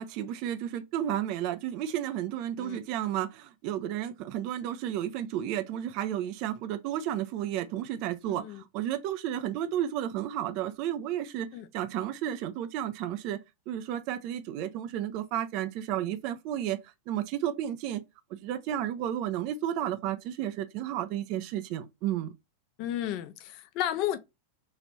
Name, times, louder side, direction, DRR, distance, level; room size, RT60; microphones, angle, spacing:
voice 1, 0.0-13.4 13.7-16.8 17.1-18.0 18.4-22.3, right 11 dB, 45° right, 0.4 m, -32 dB
voice 2, 8.3-8.6 11.5-11.7 22.8-24.2, left 12 dB, 40° left, 0.5 m, -33 dB
3.2 x 2.4 x 4.2 m
figure-of-eight pair, 90°, 0 cm